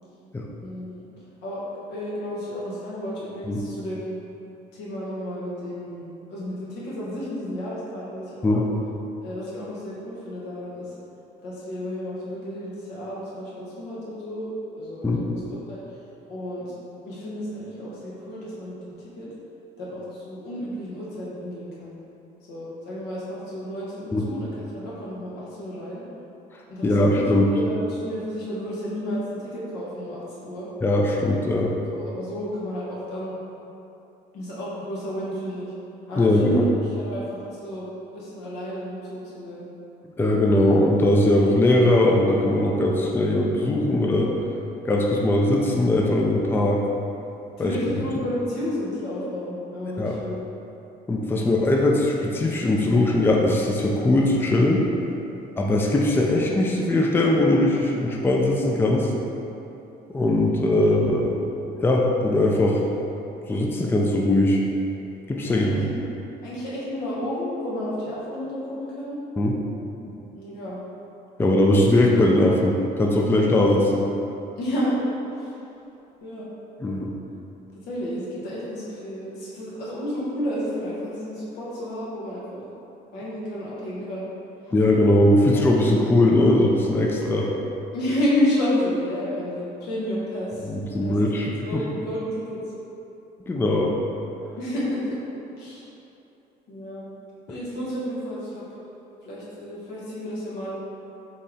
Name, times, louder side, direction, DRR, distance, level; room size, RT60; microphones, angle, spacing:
voice 1, 0.6-1.0 1.4-4.2 4.7-8.6 9.2-10.9 11.4-14.5 14.8-15.8 16.2-16.7 17.0-19.3 19.8-21.9 22.5-26.0 26.7-30.7 31.9-33.3 34.3-35.7 36.1-36.7 36.9-37.9 38.1-39.7 47.6-50.4 60.5-61.0 65.4-66.0 66.4-69.2 70.3-70.8 74.5-74.9 75.4-75.5 76.2-76.5 77.9-82.6 83.1-84.3 87.9-90.7 91.0-91.1 91.6-92.6 94.6-95.1 95.6-95.9 96.7-97.1 97.5-98.6 99.2-100.7, equal, 80° left, -7 dB, 1.3 m, -31 dB
voice 2, 26.8-27.5 30.8-31.7 36.2-36.7 40.2-44.3 44.8-46.8 47.6-47.7 50.0-50.2 51.1-54.8 55.6-59.1 60.1-61.3 61.8-62.8 63.5-64.6 65.3-65.8 69.4-69.6 70.0-70.2 71.4-74.1 76.8-77.1 84.7-87.5 90.6-91.8 93.5-93.9, left 1 dB, 15° left, -1 dB, 0.4 m, -20 dB
4.2 x 3.3 x 3.6 m, 2.9 s
cardioid pair, 110°, 17 cm